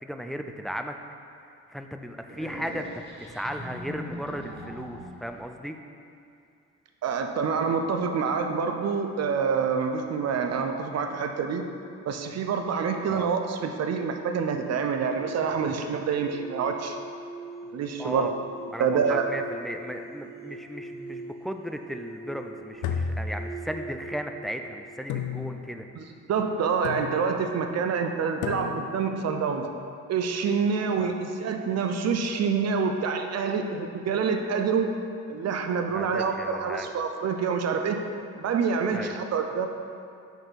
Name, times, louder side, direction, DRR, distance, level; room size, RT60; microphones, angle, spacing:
voice 1, 0.0-0.9 1.7-2.9 3.2-5.8 13.1-13.3 18.0-18.3 18.7-25.9 31.0-31.1 35.9-36.9 38.9-39.1, equal, ahead, 5 dB, 0.4 m, -36 dB
sound 1, 2.3-5.4, equal, 20° right, 1.7 m, -41 dB
voice 2, 7.0-11.7 12.1-17.0 17.7-18.3 18.8-19.2 26.0-26.1 26.3-29.7 30.1-35.0 35.3-38.0 38.3-39.7, right 5 dB, 55° right, 5 dB, 0.7 m, -27 dB
sound 2, 14.7-25.8, right 2 dB, 35° left, 1.1 m, -43 dB
sound 3, 22.8-24.0 25.1-25.9 26.8-27.5 28.4-29.1, left 6 dB, 80° left, 0.6 m, -33 dB
6.2 x 4.3 x 5.2 m, 2.4 s
cardioid pair, 90°, 30 cm